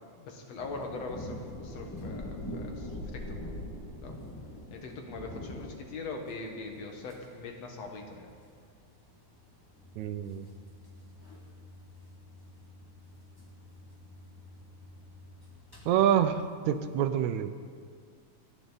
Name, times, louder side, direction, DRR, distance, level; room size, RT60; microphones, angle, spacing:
voice 1, 0.0-3.4 4.0-4.2 4.7-8.3, left 3 dB, 65° left, 2 dB, 2.5 m, -41 dB
sound 1, 0.6-17.0, left 1 dB, 10° left, 1.3 m, -44 dB
sound 2, 9.7-15.5, left 2 dB, 40° left, 2.6 m, -53 dB
voice 2, 10.0-10.5 15.9-17.5, right 9 dB, 80° right, 11 dB, 2.0 m, -27 dB
28.0 x 9.9 x 4.0 m, 2.1 s
omnidirectional pair, 3.3 m